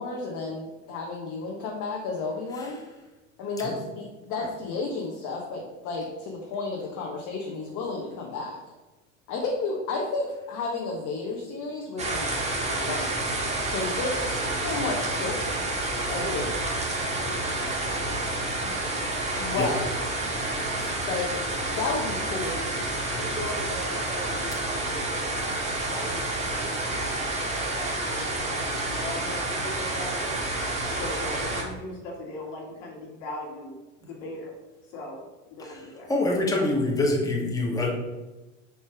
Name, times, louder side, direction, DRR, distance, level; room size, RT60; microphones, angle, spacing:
voice 1, 0.0-2.8 3.4-8.5 9.3-12.4 12.7-15.5 16.1-16.5 19.4-19.9 21.0-21.3 21.7-22.9, left 3 dB, 55° left, -2 dB, 1.2 m, -32 dB
sound 1, 12.0-31.6, right 2 dB, 15° right, 1.4 m, -29 dB
voice 2, 15.8-18.1 18.6-18.8 23.2-30.4 30.9-34.5 34.9-35.2 35.5-36.1, left 1 dB, 75° left, -1 dB, 2.1 m, -40 dB
voice 3, 36.1-37.9, left 2 dB, 10° left, -2 dB, 1.3 m, -26 dB
6.8 x 3.2 x 4.5 m, 1.1 s
hypercardioid pair, 95°, 38 cm